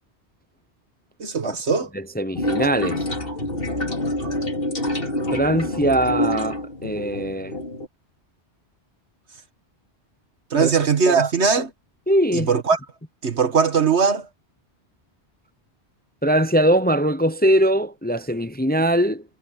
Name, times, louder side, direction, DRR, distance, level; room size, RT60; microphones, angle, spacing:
voice 1, 1.2-1.9 10.5-11.7 12.3-12.8 13.2-14.3, right 5 dB, 75° right, 1.9 m, -20 dB
voice 2, 1.9-3.0 5.3-7.6 10.6-10.7 11.1-11.3 12.1-12.5 16.2-19.2, right 1 dB, 10° left, 0.5 m, -21 dB
sound 1, 2.3-7.9, left 1 dB, 55° left, 4.6 m, -27 dB
omnidirectional pair, 1.1 m